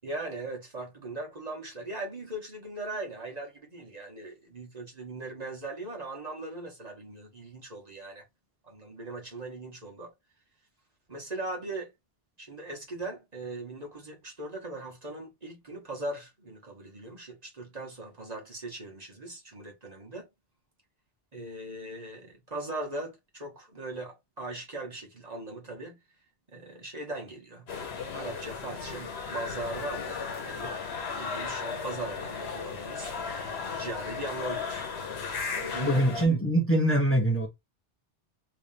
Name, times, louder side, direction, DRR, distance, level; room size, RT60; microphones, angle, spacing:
voice 1, 0.0-8.2 8.6-10.1 11.1-11.9 12.4-20.3 21.3-26.0 26.5-27.7 28.1-30.8 31.2-33.1 33.7-34.8 35.5-36.0, right 2 dB, 40° right, 1.3 m, -39 dB
sound 1, 27.7-36.3, left 5 dB, 80° left, 1.2 m, -35 dB
voice 2, 35.8-37.5, right 1 dB, 15° left, 0.9 m, -24 dB
3.5 x 3.2 x 2.7 m
omnidirectional pair, 1.0 m